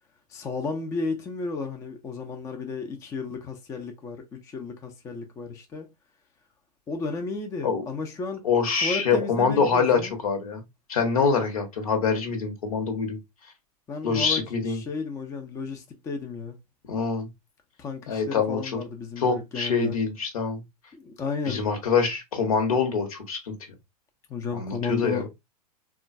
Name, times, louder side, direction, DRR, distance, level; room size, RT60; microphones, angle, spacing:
voice 1, 0.3-5.9 6.9-8.4 8.8-10.1 13.9-16.6 17.8-20.0 20.9-21.6 24.3-25.4, left 4 dB, 15° left, 0.5 m, -33 dB
voice 2, 8.4-10.6 10.9-13.2 14.0-14.8 16.9-17.3 18.1-18.8 19.2-20.6 21.4-23.5 24.5-25.2, left 5 dB, 60° left, 1.0 m, -25 dB
3.6 x 2.3 x 2.5 m
figure-of-eight pair, 100°, 20 cm